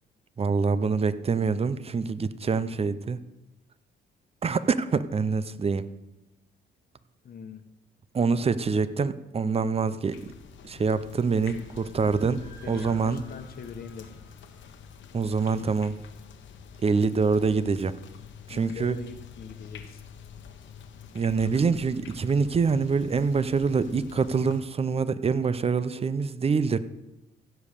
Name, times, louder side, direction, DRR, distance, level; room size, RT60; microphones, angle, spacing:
voice 1, 0.4-3.2 4.4-5.9 8.1-10.2 10.6-13.2 15.1-16.0 16.8-17.9 18.5-19.0 21.1-26.8, right 5 dB, 30° right, 14 dB, 0.6 m, -25 dB
voice 2, 7.2-7.6 12.6-14.2 18.5-20.0, left 5 dB, 50° left, 8 dB, 1.2 m, -42 dB
sound 1, 10.1-24.6, left 7 dB, 70° left, 1.2 m, -46 dB
sound 2, 11.1-15.2, equal, 15° right, 2.5 m, -54 dB
15.5 x 5.3 x 6.7 m, 0.98 s
cardioid pair, 90°, 20 cm